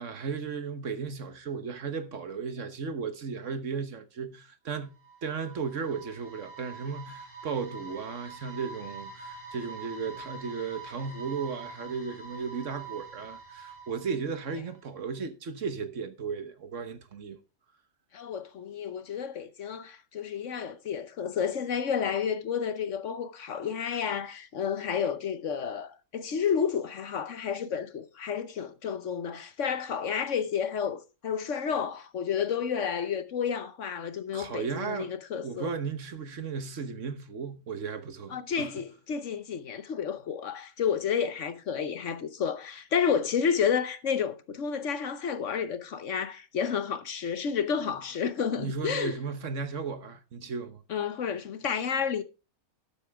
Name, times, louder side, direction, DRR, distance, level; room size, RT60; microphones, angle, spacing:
voice 1, 0.0-4.9 5.2-17.4 34.3-35.1 35.4-38.7 47.9-48.0 48.6-50.8, right 5 dB, 60° right, 1.4 m, -35 dB
sound 1, 4.8-14.8, right 4 dB, 5° left, 5.9 m, -45 dB
voice 2, 18.1-35.7 38.3-49.1 50.9-52.2, left 7 dB, 60° left, 1.1 m, -31 dB
12.5 x 8.7 x 3.4 m
omnidirectional pair, 1.5 m